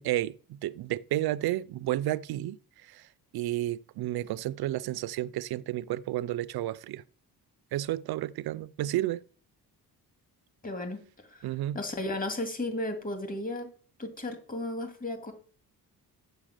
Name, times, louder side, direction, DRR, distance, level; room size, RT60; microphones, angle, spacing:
voice 1, 0.0-7.0 7.7-9.2 11.4-11.8, right 14 dB, 80° right, 0.6 m, -32 dB
voice 2, 10.6-11.0 11.3-11.5 11.7-13.7 14.0-15.3, left 1 dB, 20° left, 2.8 m, -34 dB
8.3 x 7.4 x 6.6 m
cardioid pair, 100°, 37 cm